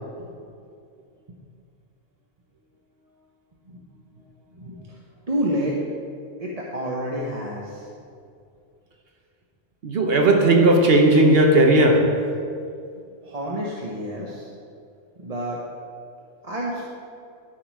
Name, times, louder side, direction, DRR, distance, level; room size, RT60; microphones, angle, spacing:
voice 1, 4.5-5.0 5.3-5.8 6.4-7.9 13.2-14.5 15.2-15.6 16.4-16.8, equal, 35° right, -4 dB, 1.1 m, -29 dB
voice 2, 9.8-12.3, right 1 dB, 55° right, 3 dB, 1.1 m, -16 dB
13.0 x 6.4 x 4.7 m, 2.4 s
omnidirectional pair, 1.2 m